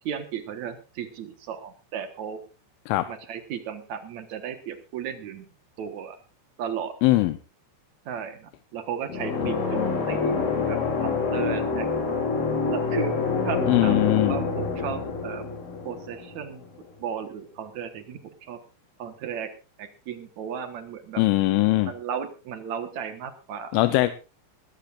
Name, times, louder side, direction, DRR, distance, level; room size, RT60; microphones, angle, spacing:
voice 1, 0.0-2.4 3.1-5.4 5.8-6.2 6.6-7.0 8.0-11.9 12.7-13.2 13.4-14.0 14.3-15.4 15.8-16.6 17.0-18.6 19.0-19.5 19.8-21.2 21.8-23.8, right 8 dB, 70° right, 8 dB, 1.7 m, -35 dB
voice 2, 7.0-7.4 13.7-14.4 21.2-21.9 23.7-24.1, left 18 dB, 85° left, 10 dB, 3.3 m, -21 dB
sound 1, 9.1-16.8, left 4 dB, 50° left, 4.7 m, -27 dB
20.5 x 16.0 x 2.5 m, 0.31 s
omnidirectional pair, 5.5 m